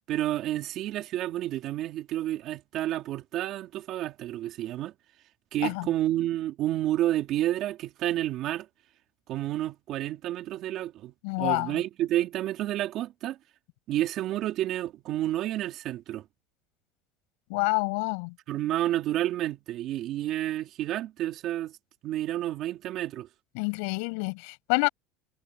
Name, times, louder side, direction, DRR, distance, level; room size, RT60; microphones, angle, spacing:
voice 1, 0.1-4.9 5.5-8.7 9.3-13.4 13.9-16.2 18.5-21.8 22.0-23.3, right 13 dB, 50° right, 3.4 m, -30 dB
voice 2, 11.2-11.8 17.5-18.4 23.5-24.9, left 34 dB, 75° left, 7.2 m, -28 dB
cardioid pair, 140°, 0 cm